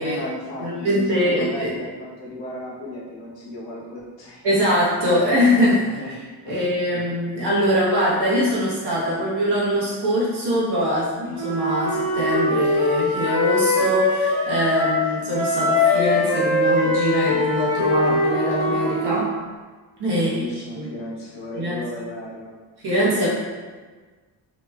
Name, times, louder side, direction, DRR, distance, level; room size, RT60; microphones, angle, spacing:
voice 1, 0.0-4.6 5.1-5.2 5.8-6.2 6.4-6.6 6.9-7.1 20.0-22.5, left 1 dB, 80° left, -4 dB, 0.9 m, -35 dB
voice 2, 0.6-1.7 4.4-6.0 6.5-19.3 20.0-20.3 20.8-20.9 21.6-21.8 22.8-23.3, equal, 70° right, -7 dB, 1.2 m, -22 dB
Wind instrument woodwind instrument, 11.3-15.0 15.3-19.3, left 2 dB, 30° left, 1.0 m, -22 dB
3.0 x 2.9 x 2.2 m, 1.4 s
cardioid pair, 155°, 42 cm